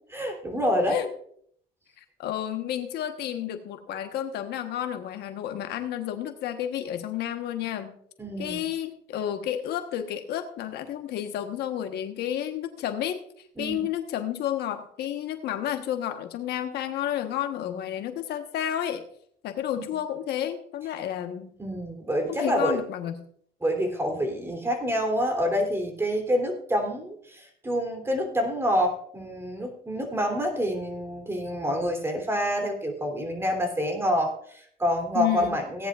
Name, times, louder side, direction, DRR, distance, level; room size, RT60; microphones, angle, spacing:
voice 1, 0.1-1.0 8.2-8.6 13.6-13.9 21.6-22.8 23.6-35.9, equal, 15° right, 3 dB, 3.1 m, -27 dB
voice 2, 2.0-8.0 8.4-13.2 13.6-19.0 19.4-21.5 22.3-23.3 35.1-35.6, left 11 dB, 75° left, 7 dB, 1.2 m, -31 dB
17.5 x 10.5 x 2.4 m, 0.63 s
cardioid pair, 110°, 17 cm